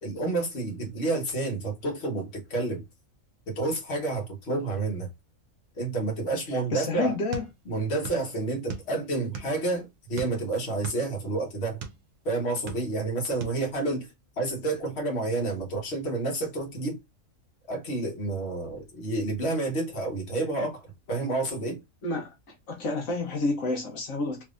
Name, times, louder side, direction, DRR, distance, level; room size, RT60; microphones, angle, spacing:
voice 1, 0.0-2.8 3.5-5.1 5.8-7.1 7.6-11.8 12.2-14.1 14.4-17.0 17.7-20.8 21.1-21.8, right 2 dB, 55° left, 1.5 m, -29 dB
voice 2, 6.5-7.4 22.0-22.3 22.7-24.4, left 3 dB, 80° left, 1.3 m, -29 dB
sound 1, 7.3-8.3 8.5-9.7 10.1-12.0 12.5-13.1 13.4-13.6, right 5 dB, 70° right, 1.1 m, -38 dB
3.3 x 3.2 x 2.4 m
omnidirectional pair, 1.4 m